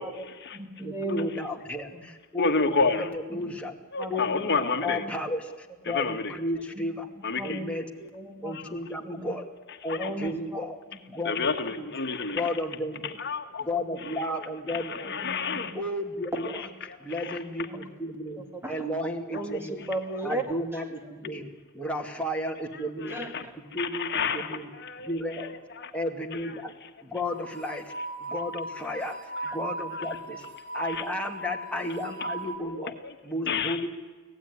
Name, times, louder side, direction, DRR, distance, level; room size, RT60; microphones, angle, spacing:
voice 1, 0.0-1.3 1.9-2.1 3.3-3.5 4.0-4.6 4.8-5.2 6.7-6.9 7.4-7.7 8.0-8.6 9.0-9.4 10.0-10.6 11.1-11.2 11.7-11.8 13.7-14.0 15.0-15.8 16.6-16.8 17.7-17.8 18.5-18.9 19.3-20.4 23.1-23.3 24.2-24.4, right 2 dB, 10° right, 6 dB, 2.0 m, -37 dB
voice 2, 0.8-3.8 4.1-7.1 7.4-7.8 8.4-9.5 9.8-10.8 11.1-11.9 12.3-13.2 13.6-15.2 15.7-16.5 17.0-18.4 18.7-19.9 20.2-21.5 21.7-23.2 23.7-24.7 25.0-25.5 25.9-26.7 27.0-27.9 28.2-30.5 30.7-32.9 33.2-33.9, left 1 dB, 5° left, 1 dB, 2.5 m, -33 dB
voice 3, 2.4-3.1 3.9-5.0 5.9-6.3 7.2-7.6 8.5-8.7 9.9-10.1 11.2-12.5 13.2-13.7 14.7-15.7 17.2-17.4 23.1-23.4 23.8-25.1 25.4-25.5 25.8-25.9 30.9-31.0 32.7-32.9 33.5-33.8, left 4 dB, 55° left, 7 dB, 1.6 m, -29 dB
sound 1, 27.2-32.6, right 2 dB, 55° right, 5.0 m, -37 dB
25.0 x 17.5 x 9.7 m, 1.3 s
head